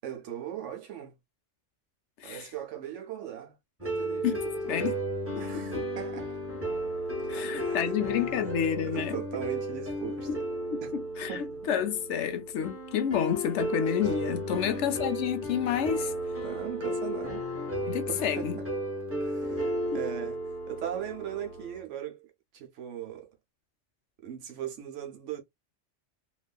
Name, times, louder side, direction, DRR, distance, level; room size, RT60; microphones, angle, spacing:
voice 1, 0.0-1.2 2.2-3.6 3.8-4.8 5.4-6.4 7.2-7.9 8.3-8.5 8.8-10.3 10.8-10.9 11.3-11.6 14.5-14.8 16.4-17.5 17.8-18.6 19.2-20.4 20.7-22.2 22.5-23.3 24.2-25.4, right 10 dB, 80° right, 1.1 m, -39 dB
voice 2, 2.2-2.5 4.2-4.4 4.7-4.9 5.7-5.8 7.3-9.2 10.3-10.4 10.7-16.1 17.9-18.6 19.9-20.0, left 9 dB, 75° left, 0.9 m, -30 dB
sound 1, 3.8-21.8, equal, 10° right, 1.1 m, -34 dB
3.0 x 2.4 x 2.2 m
omnidirectional pair, 1.3 m